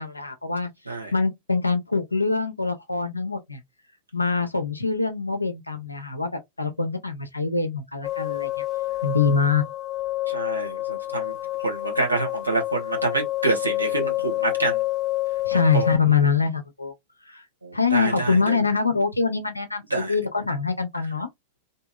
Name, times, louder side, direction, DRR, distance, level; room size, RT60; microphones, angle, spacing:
voice 1, 0.0-3.6 4.1-8.6 9.0-9.6 15.5-16.9 17.2-17.4 17.7-21.3, left 5 dB, 85° left, 0.5 m, -24 dB
sound 1, 8.0-16.0, left 17 dB, 25° left, 0.5 m, -28 dB
voice 2, 10.3-11.3 11.6-14.8 15.7-15.9 17.6-18.6 19.9-20.1, right 3 dB, 85° right, 0.9 m, -27 dB
2.7 x 2.7 x 2.3 m
figure-of-eight pair, 90°, 0 cm